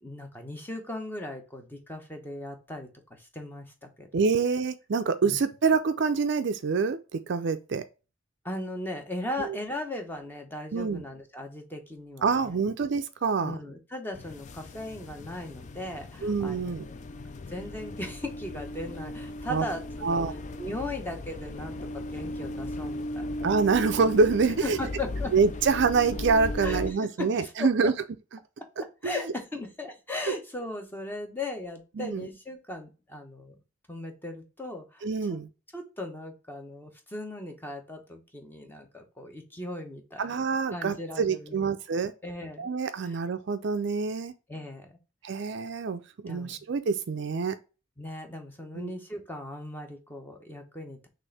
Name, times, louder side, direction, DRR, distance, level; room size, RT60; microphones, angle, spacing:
voice 1, 0.0-4.3 5.2-5.4 8.4-12.6 13.4-17.0 17.5-23.7 24.6-25.3 26.6-27.9 28.6-33.5 33.9-35.4 35.7-40.5 40.7-41.7 42.2-42.7 43.0-43.2 44.5-45.0 46.3-46.6 48.0-51.1, left 1 dB, 10° left, 0.9 m, -38 dB
voice 2, 4.1-7.8 9.4-9.6 10.7-11.0 12.2-13.5 16.2-16.9 19.5-19.6 20.0-20.3 23.4-24.8 25.3-27.9 29.0-29.2 32.0-32.2 35.0-35.5 40.2-42.1 42.6-44.3 45.2-47.6 48.7-48.9, right 5 dB, 55° right, 0.4 m, -26 dB
sound 1, 14.1-26.9, left 1 dB, 35° left, 0.4 m, -37 dB
6.2 x 2.6 x 3.3 m
head